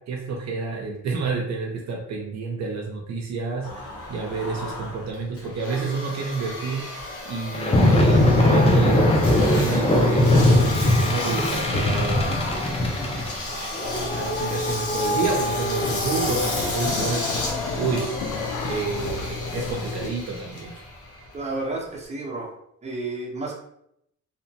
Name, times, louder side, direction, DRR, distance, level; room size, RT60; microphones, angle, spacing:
voice 1, 0.1-7.0 7.3-12.4 13.5-20.7, right 4 dB, 60° right, 0 dB, 0.5 m, -30 dB
Engine, 3.6-22.1, left 2 dB, 50° left, 0.9 m, -33 dB
sound 1, 7.5-18.1, left 1 dB, 20° left, 0.5 m, -21 dB
sound 2, 13.8-20.1, left 5 dB, 90° left, 0.5 m, -32 dB
voice 2, 21.3-22.5 22.8-23.6, right 2 dB, 20° right, -2 dB, 0.8 m, -31 dB
2.8 x 2.1 x 2.7 m, 0.76 s
cardioid pair, 75°, 30 cm